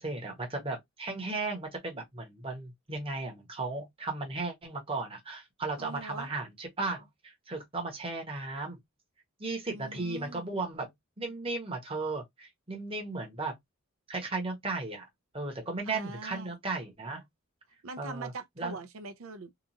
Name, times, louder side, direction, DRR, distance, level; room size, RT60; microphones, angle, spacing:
voice 1, 0.0-8.8 9.4-10.9 11.2-13.5 14.1-15.1 15.3-17.2 18.0-18.3 18.6-18.8, right 3 dB, 25° right, 1.0 m, -35 dB
voice 2, 5.8-6.3 9.7-10.5 15.9-16.5 17.8-19.5, right 3 dB, 75° right, 0.5 m, -43 dB
2.9 x 2.4 x 2.4 m
head